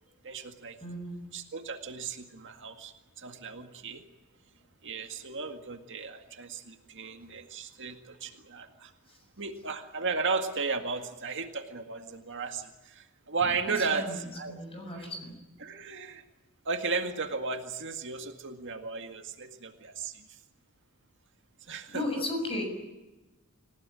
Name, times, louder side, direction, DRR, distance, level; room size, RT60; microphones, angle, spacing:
voice 1, 0.2-0.8 1.3-4.0 4.8-8.9 9.4-14.6 14.9-15.1 15.6-16.2 16.7-20.4 21.7-22.0, right 4 dB, 55° right, 6 dB, 2.0 m, -35 dB
voice 2, 0.8-1.3 13.7-14.2 14.5-15.4 21.9-22.6, left 1 dB, 25° left, 5 dB, 6.9 m, -35 dB
27.5 x 17.0 x 9.9 m, 1.1 s
head